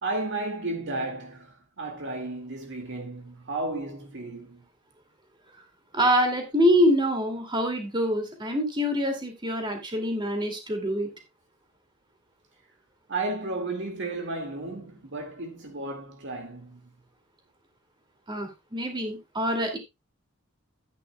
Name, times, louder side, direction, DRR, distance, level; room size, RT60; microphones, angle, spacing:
voice 1, 0.0-4.6 13.1-16.9, right 2 dB, 55° right, 2.1 m, -33 dB
voice 2, 5.9-11.1 18.3-19.8, equal, 20° right, 2.5 m, -25 dB
13.0 x 9.5 x 2.3 m
head